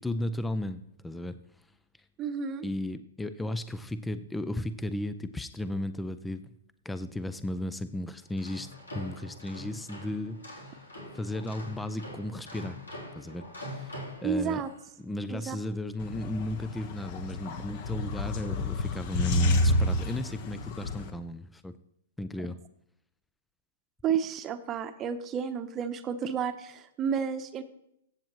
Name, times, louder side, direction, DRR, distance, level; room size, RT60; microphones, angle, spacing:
voice 1, 0.0-1.7 2.6-6.4 6.8-10.8 11.1-12.8 13.2-14.6 15.0-21.7 22.2-22.6, left 1 dB, 5° left, 12 dB, 0.4 m, -35 dB
voice 2, 2.2-2.6 14.2-14.7 15.3-15.6 24.0-27.6, right 7 dB, 25° right, 10 dB, 0.9 m, -31 dB
sound 1, 8.2-14.9, left 1 dB, 90° left, 3.3 m, -44 dB
sound 2, 16.0-21.1, left 1 dB, 45° left, 1.3 m, -29 dB
15.0 x 7.9 x 3.1 m, 0.77 s
hypercardioid pair, 120°, 0 cm